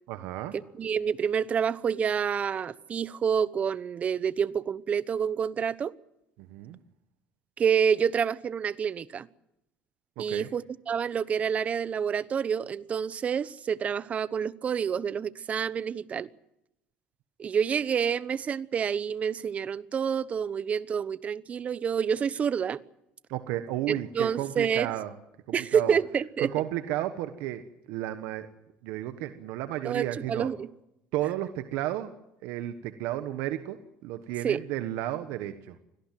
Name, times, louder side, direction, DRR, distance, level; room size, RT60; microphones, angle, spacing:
voice 1, 0.1-0.5 6.5-6.8 10.2-10.5 23.3-25.1 25.5-26.0 26.4-28.5 28.8-30.5 31.1-32.1 32.4-35.8, right 13 dB, 75° right, 1.4 m, -33 dB
voice 2, 0.8-5.9 7.6-9.3 10.2-16.3 17.4-22.8 23.9-24.9 25.5-26.5 29.8-30.7 34.4-34.6, right 7 dB, 35° right, 0.9 m, -28 dB
24.5 x 18.0 x 7.7 m
cardioid pair, 115°, 4 cm